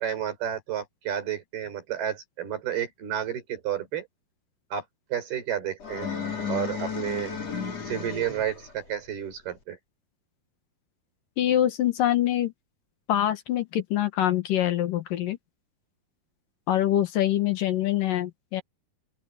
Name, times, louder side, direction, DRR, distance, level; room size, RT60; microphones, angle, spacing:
voice 1, 0.0-4.1 4.7-4.8 5.1-6.2 6.5-7.3 7.9-9.8, right 10 dB, 85° right, 6.8 m, -31 dB
sound 1, 5.8-8.7, left 6 dB, 45° left, 5.0 m, -33 dB
voice 2, 11.4-12.5 13.1-15.4 16.7-18.6, left 12 dB, 65° left, 2.9 m, -24 dB
open air
omnidirectional pair, 4.4 m